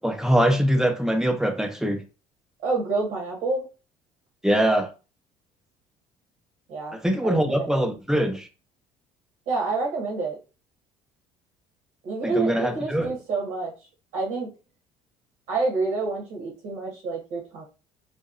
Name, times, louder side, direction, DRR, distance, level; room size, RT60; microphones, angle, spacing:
voice 1, 0.0-2.0 4.4-4.9 6.9-8.5 12.2-13.1, equal, 5° right, 0.4 m, -23 dB
voice 2, 2.6-3.7 6.7-7.8 9.5-10.4 12.0-13.7 14.1-14.5 15.5-17.6, right 3 dB, 80° right, 1.0 m, -28 dB
2.7 x 2.0 x 2.4 m
cardioid pair, 110°, 13 cm